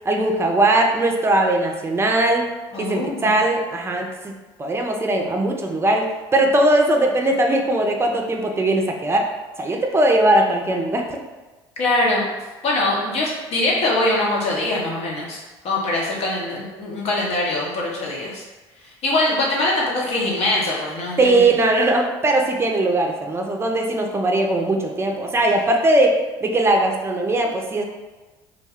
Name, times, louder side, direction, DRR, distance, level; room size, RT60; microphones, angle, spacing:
voice 1, 0.1-2.5 2.8-4.3 4.6-9.2 9.6-11.2 21.2-27.8, right 1 dB, 20° right, 2 dB, 0.5 m, -19 dB
voice 2, 2.7-3.4 11.8-12.3 12.6-18.4 18.8-21.5 25.5-25.6, left 2 dB, 55° left, -3 dB, 1.0 m, -23 dB
2.4 x 2.2 x 3.5 m, 1.2 s
hypercardioid pair, 65°, 13 cm